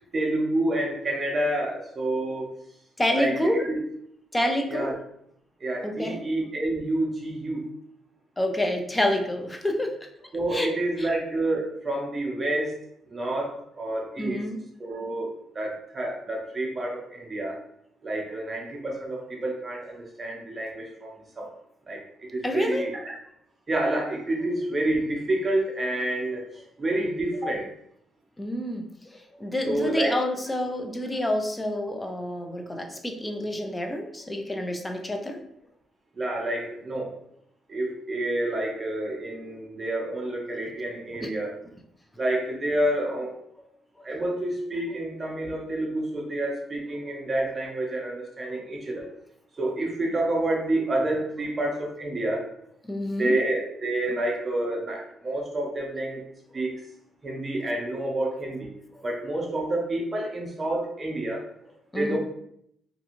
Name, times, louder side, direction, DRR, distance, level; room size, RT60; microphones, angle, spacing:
voice 1, 0.1-2.5 3.1-3.8 4.7-4.9 5.6-7.7 10.3-12.8 13.1-14.4 14.8-17.6 18.0-21.5 21.9-23.2 23.7-26.5 26.8-27.7 29.6-30.1 36.1-37.1 37.7-41.5 42.2-43.3 44.0-49.1 49.6-52.5 53.2-56.2 56.5-56.8 57.2-58.7 59.0-61.4 61.9-62.2, right 1 dB, 30° right, -1 dB, 0.6 m, -28 dB
voice 2, 3.0-3.7 4.3-5.0 5.8-6.2 8.4-10.1 10.5-11.1 14.2-14.6 22.4-22.9 28.4-35.4 41.2-41.3 44.0-44.1 48.5-48.7 52.8-53.4 61.9-62.2, left 1 dB, 15° left, 4 dB, 0.4 m, -28 dB
2.5 x 2.3 x 2.8 m, 0.72 s
cardioid pair, 90°, 0 cm